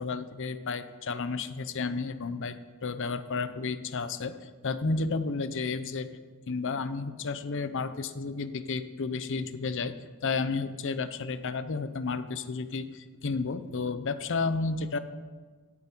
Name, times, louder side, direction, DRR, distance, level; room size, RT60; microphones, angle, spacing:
voice 1, 0.0-2.6 2.8-6.2 6.5-9.9 10.2-15.0, left 4 dB, 60° left, 12 dB, 0.7 m, -32 dB
17.0 x 8.5 x 4.5 m, 1.4 s
head